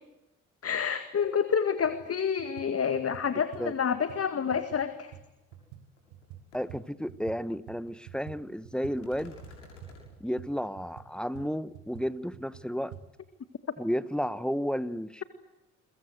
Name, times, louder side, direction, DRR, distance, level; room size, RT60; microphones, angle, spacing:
voice 1, 0.6-5.1, left 7 dB, 40° left, 10 dB, 2.0 m, -28 dB
sound 1, 1.2-1.3 1.8-2.1 2.4-7.4 7.7-13.0, right 10 dB, 70° right, 4.0 m, -49 dB
sound 2, 5.5-5.6 6.0-6.2 6.5-6.6 9.0-10.0, left 2 dB, 85° left, 6.5 m, -50 dB
voice 2, 6.5-9.4 10.2-12.9 13.8-15.2, equal, ahead, 15 dB, 1.5 m, -32 dB
30.0 x 22.5 x 8.1 m, 0.97 s
figure-of-eight pair, 45°, 36 cm